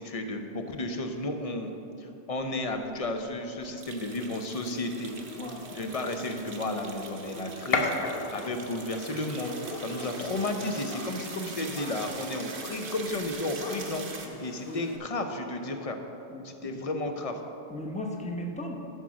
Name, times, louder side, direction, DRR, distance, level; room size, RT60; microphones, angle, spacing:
voice 1, 0.0-1.7 2.0-5.1 5.7-7.9 8.3-14.0 14.4-16.0 16.4-17.4, left 2 dB, 35° left, 5 dB, 0.7 m, -33 dB
sound 1, 2.7-2.8 3.0-3.1 3.6-14.3, right 4 dB, 75° right, 1.2 m, -42 dB
Gunshot gunfire, 5.0-15.0, left 3 dB, 65° left, 1.1 m, -38 dB
voice 2, 16.3-16.8 17.7-18.8, left 1 dB, 5° left, 1 dB, 0.8 m, -37 dB
11.0 x 5.8 x 6.2 m, 2.8 s
omnidirectional pair, 1.1 m